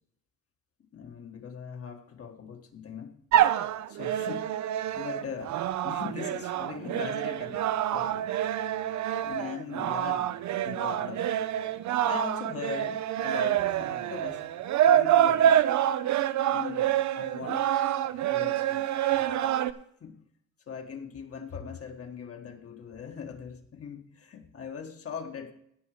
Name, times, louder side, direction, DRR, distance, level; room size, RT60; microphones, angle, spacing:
voice 1, 0.9-3.2 3.9-4.5 4.9-5.6 5.8-7.6 7.9-8.3 9.2-11.3 12.0-14.4 14.9-15.6 16.5-17.7 18.3-18.9 19.1-19.2 20.0-20.2 20.7-25.5, left 6 dB, 50° left, 4 dB, 1.5 m, -40 dB
sound 1, 3.3-19.7, right 11 dB, 70° right, 0.6 m, -27 dB
16.0 x 5.6 x 4.9 m, 0.70 s
cardioid pair, 90°, 30 cm